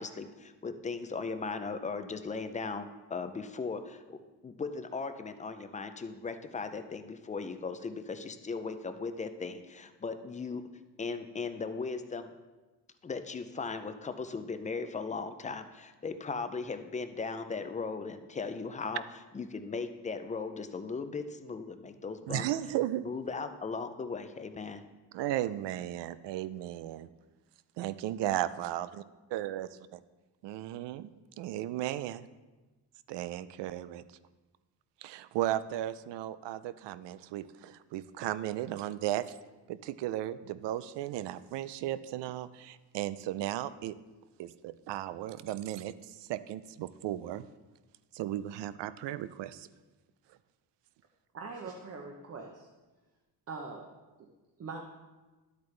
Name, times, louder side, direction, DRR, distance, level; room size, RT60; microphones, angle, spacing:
voice 1, 0.0-10.7 11.0-12.3 13.0-19.0 19.3-22.5 23.0-24.8, left 4 dB, 20° left, 9 dB, 0.4 m, -38 dB
voice 2, 22.3-23.0 25.1-27.1 27.8-28.9 29.3-29.7 30.4-31.1 31.4-32.3 33.1-34.0 35.0-39.4 39.7-43.9 44.4-47.4 48.1-49.7, right 13 dB, 75° right, 15 dB, 0.5 m, -35 dB
voice 3, 51.3-52.7 53.5-53.9 54.6-54.8, right 4 dB, 35° right, 2 dB, 0.8 m, -42 dB
11.5 x 8.2 x 3.3 m, 1.2 s
cardioid pair, 155°, 42 cm